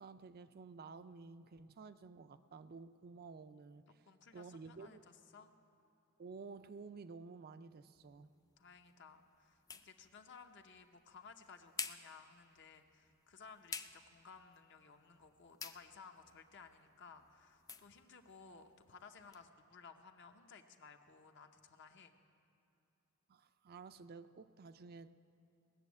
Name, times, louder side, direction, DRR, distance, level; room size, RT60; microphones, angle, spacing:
voice 1, 0.0-3.8 4.3-5.0 6.2-8.3 23.3-25.2, right 4 dB, 45° right, 11 dB, 0.4 m, -52 dB
voice 2, 4.1-5.5 8.2-22.1, left 5 dB, 60° left, 6 dB, 0.8 m, -58 dB
sound 1, 8.0-19.5, left 5 dB, 15° left, 0.4 m, -53 dB
19.0 x 7.0 x 8.3 m, 2.9 s
head